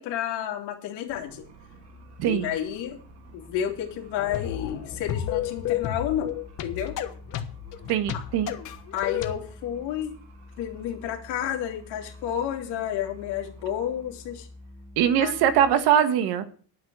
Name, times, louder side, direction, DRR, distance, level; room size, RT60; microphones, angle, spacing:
voice 1, 0.0-1.4 2.3-3.0 3.3-6.3 6.6-7.0 8.1-8.3 8.9-10.2 10.6-14.5 15.2-15.3, left 10 dB, 80° left, 2 dB, 3.1 m, -31 dB
sound 1, 1.1-15.8, equal, 35° right, 2.0 m, -48 dB
voice 2, 2.2-2.5 7.9-8.5 15.0-16.4, right 9 dB, 70° right, 10 dB, 1.5 m, -22 dB
sound 2, 4.2-9.3, left 11 dB, 50° left, 1.3 m, -32 dB
10.5 x 9.2 x 6.3 m, 0.43 s
cardioid pair, 170°, 40 cm